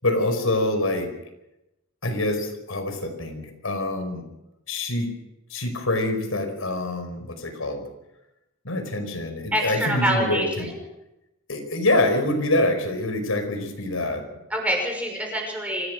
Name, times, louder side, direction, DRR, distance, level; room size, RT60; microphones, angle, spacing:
voice 1, 0.0-1.1 2.0-4.3 4.7-5.1 5.5-7.9 8.6-10.7 11.5-14.2, left 1 dB, 80° left, 6 dB, 5.0 m, -25 dB
voice 2, 9.5-10.8 14.5-15.9, equal, 5° right, 1 dB, 6.1 m, -26 dB
26.0 x 18.0 x 6.5 m, 0.93 s
head